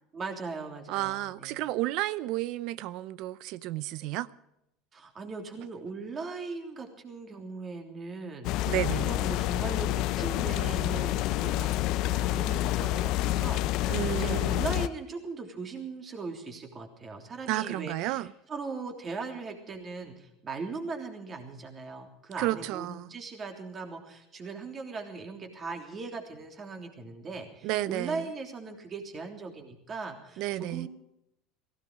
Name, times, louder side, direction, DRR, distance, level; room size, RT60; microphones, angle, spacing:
voice 1, 0.1-1.6 4.9-11.7 12.1-30.9, right 4 dB, 25° right, 3.3 m, -39 dB
voice 2, 0.9-4.3 8.7-9.1 13.9-14.6 17.5-18.3 22.4-23.1 27.6-28.2 30.4-30.9, right 15 dB, 60° right, 0.7 m, -31 dB
sound 1, 8.4-14.9, left 15 dB, 55° left, 0.7 m, -28 dB
17.5 x 16.5 x 4.9 m
supercardioid pair, 135°, 0 cm